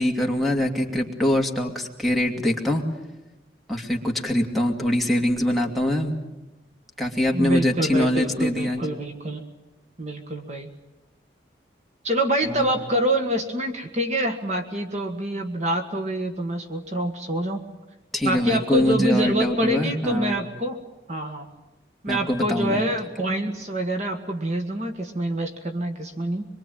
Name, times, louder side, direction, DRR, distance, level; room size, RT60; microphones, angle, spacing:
voice 1, 0.0-2.8 3.7-6.2 7.0-8.8 12.4-12.7 18.1-20.4 22.1-22.8, left 1 dB, ahead, -2 dB, 2.6 m, -23 dB
voice 2, 7.3-9.4 10.0-10.7 12.0-17.6 18.2-20.8 21.1-21.5 22.0-26.4, right 1 dB, 40° right, 5 dB, 1.6 m, -26 dB
24.5 x 23.0 x 9.1 m, 1.0 s
head